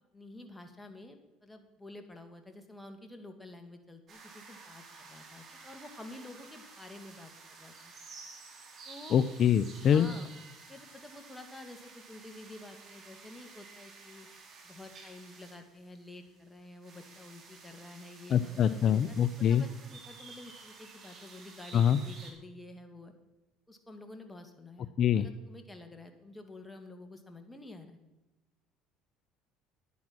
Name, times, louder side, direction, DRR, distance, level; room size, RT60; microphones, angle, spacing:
voice 1, 0.1-7.9 8.9-9.2 9.8-10.3 10.7-14.3 14.6-19.2 19.5-23.1 23.7-28.0, left 2 dB, 10° left, 5 dB, 2.1 m, -49 dB
sound 1, 4.1-22.3, right 4 dB, 45° right, 3.1 m, -52 dB
voice 2, 9.1-10.1 18.3-19.6 21.7-22.0 25.0-25.3, left 9 dB, 50° left, 13 dB, 0.5 m, -25 dB
10.5 x 9.4 x 6.1 m, 1.0 s
supercardioid pair, 80°, 0 cm